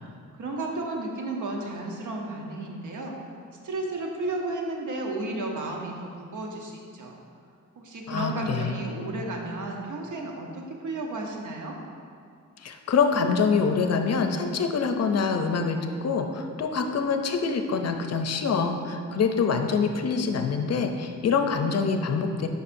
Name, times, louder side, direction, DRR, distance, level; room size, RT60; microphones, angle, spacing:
voice 1, 0.0-3.2 3.6-7.2 7.8-11.8, right 2 dB, 70° right, 0 dB, 1.0 m, -33 dB
voice 2, 8.1-8.8 12.6-22.5, left 5 dB, 55° left, 5 dB, 0.6 m, -25 dB
8.4 x 5.8 x 2.6 m, 2.2 s
cardioid pair, 100°, 31 cm